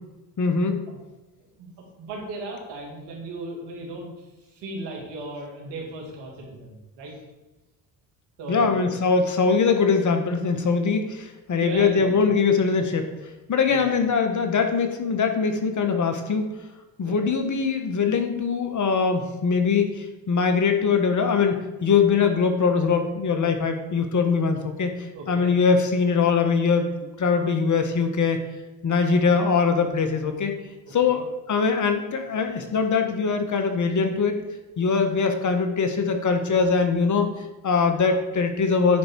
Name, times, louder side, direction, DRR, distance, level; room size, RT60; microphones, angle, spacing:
voice 1, 0.4-0.8 8.5-13.1 13.5-16.4 17.0-24.9 25.3-26.9 27.2-28.4 28.8-30.5 30.9-34.3 34.8-39.0, left 5 dB, 45° left, 6 dB, 1.5 m, -22 dB
voice 2, 2.0-4.1 4.5-7.1 8.4-8.9 11.5-12.3 13.7-14.0 17.0-17.2 25.1-25.5 30.9-31.2, right 2 dB, 80° right, -1 dB, 2.6 m, -36 dB
10.0 x 4.9 x 4.7 m, 1.1 s
supercardioid pair, 70°, 41 cm